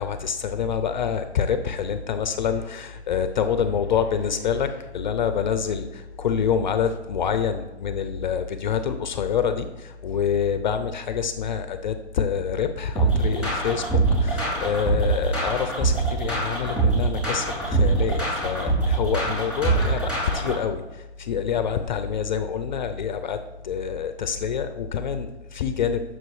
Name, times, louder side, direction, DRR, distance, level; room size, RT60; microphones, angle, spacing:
voice 1, 0.0-23.4 23.6-26.0, left 7 dB, 45° left, 9 dB, 0.4 m, -26 dB
sound 1, 13.0-20.6, right 3 dB, 5° right, 2.6 m, -23 dB
7.7 x 6.2 x 3.1 m, 1.1 s
hypercardioid pair, 135°, 34 cm